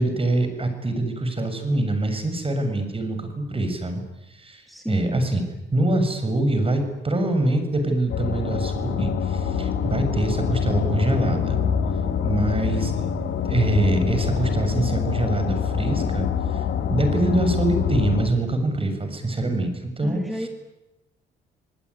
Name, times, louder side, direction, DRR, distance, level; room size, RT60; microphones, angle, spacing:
voice 1, 0.0-4.0 4.3-5.4 5.7-11.6 12.2-12.9 13.4-20.5, right 2 dB, 30° right, 8 dB, 7.0 m, -24 dB
voice 2, 4.7-5.2 20.0-20.5, equal, ahead, 4 dB, 2.6 m, -31 dB
sound 1, 8.1-18.3, left 7 dB, 70° left, 3.0 m, -25 dB
28.5 x 19.5 x 9.9 m, 0.96 s
cardioid pair, 90°, 20 cm